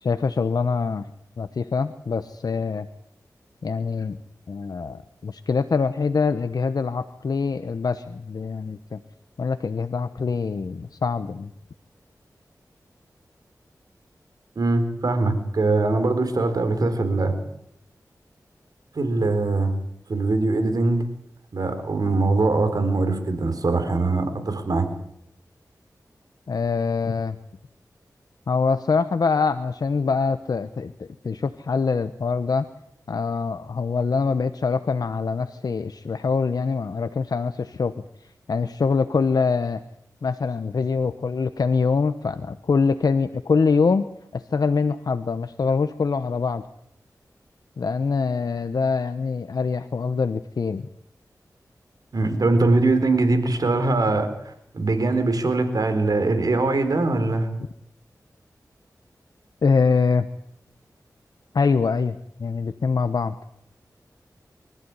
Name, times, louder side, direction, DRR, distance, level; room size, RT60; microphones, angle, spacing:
voice 1, 0.0-1.1 1.4-2.9 3.6-4.2 4.5-9.0 9.4-11.5 26.5-27.4 28.5-32.7 33.1-37.9 38.2-39.8 40.2-44.1 44.3-46.6 47.8-50.9 59.6-60.3 61.5-63.4, left 4 dB, 75° left, 10 dB, 1.0 m, -24 dB
voice 2, 14.6-17.3 18.9-19.7 20.1-21.0 21.5-24.9 52.1-57.5, right 3 dB, 70° right, 8 dB, 4.1 m, -22 dB
24.5 x 14.5 x 9.8 m, 0.74 s
wide cardioid pair, 75°, 7 cm